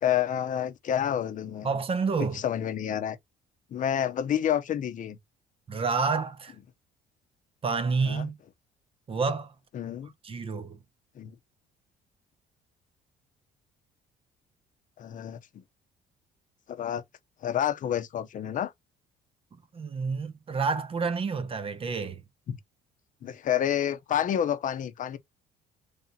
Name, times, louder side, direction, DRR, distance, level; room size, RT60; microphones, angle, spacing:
voice 1, 0.0-1.7 2.2-3.2 3.7-5.2 8.0-8.3 9.7-10.1 11.2-11.3 15.0-15.4 16.7-17.0 17.4-18.7 22.5-22.6 23.2-25.2, left 10 dB, 50° left, 0.7 m, -29 dB
voice 2, 1.6-2.4 5.7-6.5 7.6-8.4 9.1-9.5 10.2-10.8 19.7-22.2, right 4 dB, 35° right, 0.7 m, -29 dB
3.3 x 2.8 x 4.0 m
cardioid pair, 110°, 17 cm